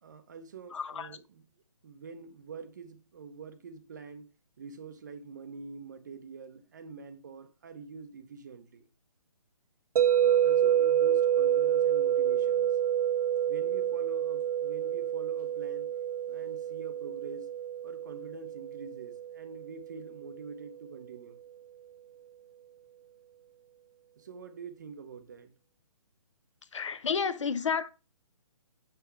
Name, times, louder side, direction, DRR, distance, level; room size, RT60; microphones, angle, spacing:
voice 1, 0.0-1.5 1.8-4.3 4.6-8.9 10.1-12.8 13.5-15.9 16.3-17.5 17.8-21.4 24.2-25.5, right 5 dB, 30° right, 0.7 m, -46 dB
voice 2, 0.7-1.1 26.7-27.9, left 6 dB, 55° left, 0.6 m, -31 dB
sound 1, 10.0-20.0, right 10 dB, 80° right, 0.4 m, -28 dB
6.8 x 5.9 x 3.1 m
hypercardioid pair, 170°, 19 cm